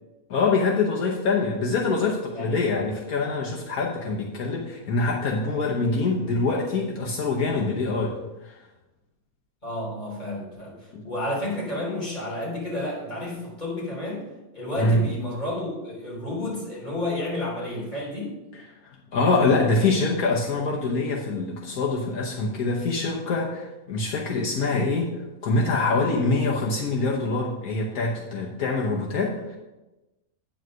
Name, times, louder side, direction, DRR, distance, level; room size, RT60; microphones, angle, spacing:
voice 1, 0.3-8.2 8.4-8.6 10.9-11.0 14.8-15.1 18.5-18.6 19.1-25.1 25.4-29.6, left 3 dB, 70° left, -2 dB, 1.5 m, -24 dB
voice 2, 9.6-14.2 14.5-18.3, left 1 dB, 30° left, -5 dB, 3.6 m, -31 dB
9.1 x 4.8 x 6.3 m, 1.0 s
omnidirectional pair, 1.6 m